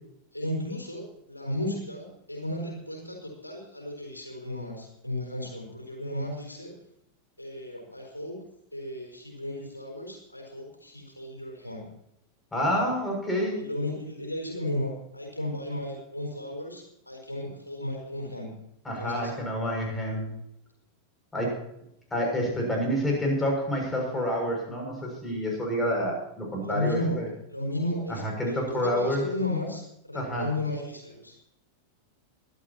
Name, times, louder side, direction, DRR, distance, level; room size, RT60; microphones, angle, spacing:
voice 1, 0.3-6.7 7.4-8.4 8.7-11.9 13.6-18.5 19.0-19.3 26.6-27.2 27.5-31.3, left 1 dB, 85° left, 1 dB, 4.2 m, -34 dB
voice 2, 12.5-13.6 18.8-20.3 21.3-21.6 22.1-27.3 28.1-29.2 30.1-30.5, equal, 10° left, 0 dB, 6.5 m, -28 dB
23.5 x 12.5 x 2.9 m, 0.80 s
figure-of-eight pair, 90°, 0 cm